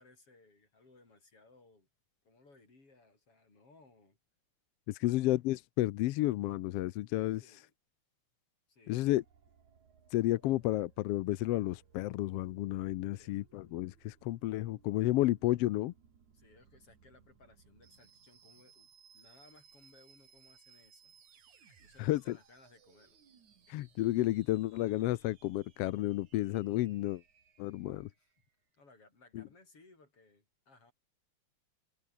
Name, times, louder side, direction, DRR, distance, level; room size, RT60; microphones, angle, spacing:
voice 1, 0.0-1.9 2.2-4.2 5.0-5.2 7.3-7.7 8.7-9.2 13.1-13.7 16.3-18.9 19.1-21.2 21.8-23.2 27.9-28.3 28.8-30.9, left 3 dB, 50° left, 8.1 m, -62 dB
voice 2, 4.9-7.4 8.9-9.2 10.1-15.9 22.0-22.4 23.7-27.2 27.6-28.1 29.3-29.4, left 16 dB, 75° left, 1.5 m, -31 dB
sound 1, 9.2-28.5, right 7 dB, 80° right, 4.4 m, -64 dB
omnidirectional pair, 3.3 m